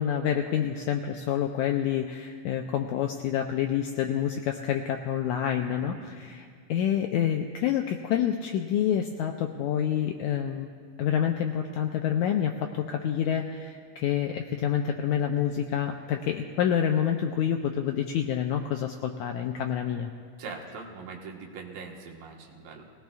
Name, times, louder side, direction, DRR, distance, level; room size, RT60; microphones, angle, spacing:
voice 1, 0.0-10.7 11.0-20.1, left 9 dB, 90° left, 4 dB, 1.7 m, -28 dB
voice 2, 5.6-6.1 20.4-22.9, right 4 dB, 85° right, 0 dB, 3.1 m, -42 dB
21.5 x 17.5 x 2.4 m, 2.2 s
omnidirectional pair, 3.9 m